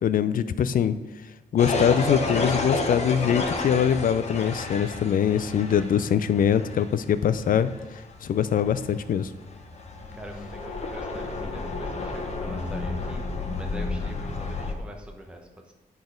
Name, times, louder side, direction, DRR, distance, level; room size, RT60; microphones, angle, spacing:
voice 1, 0.0-1.0 1.5-7.7 8.2-9.3, left 8 dB, 60° left, 14 dB, 0.4 m, -23 dB
sound 1, 1.6-14.7, left 3 dB, 40° left, 0.8 m, -31 dB
voice 2, 5.7-6.1 10.1-13.2 13.5-15.7, right 1 dB, 5° right, 1 dB, 0.9 m, -43 dB
9.3 x 4.0 x 5.1 m, 1.1 s
wide cardioid pair, 160°, 16 cm